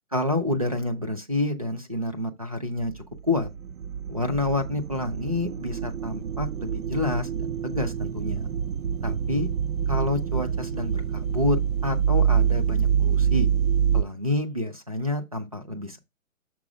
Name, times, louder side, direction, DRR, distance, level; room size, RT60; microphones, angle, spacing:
voice 1, 0.1-3.5 4.1-8.5 9.0-9.5 9.9-13.5 13.9-16.0, left 2 dB, 30° right, 0.4 m, -28 dB
sound 1, 2.8-14.0, right 8 dB, 80° right, 0.6 m, -26 dB
6.0 x 4.5 x 4.8 m
hypercardioid pair, 170°, 42 cm